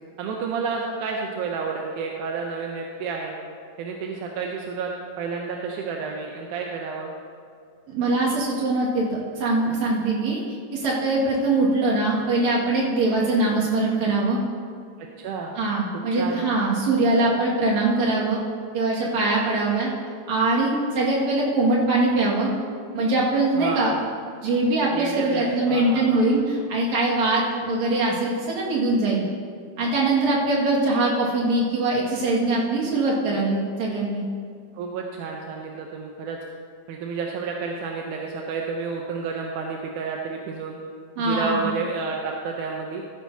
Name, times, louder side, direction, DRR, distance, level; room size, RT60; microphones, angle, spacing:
voice 1, 0.2-3.3 3.8-4.9 5.2-7.1 15.0-15.6 15.9-16.4 23.6-23.9 24.9-26.2 34.7-36.4 36.9-40.8 41.2-43.0, right 4 dB, 85° right, 0 dB, 2.3 m, -30 dB
voice 2, 7.9-10.4 10.7-14.4 15.6-18.4 18.7-19.9 20.3-22.5 22.9-23.9 24.4-29.3 29.8-34.2 41.2-41.6, right 2 dB, 70° right, -4 dB, 3.2 m, -22 dB
14.5 x 11.0 x 2.7 m, 2.2 s
omnidirectional pair, 3.4 m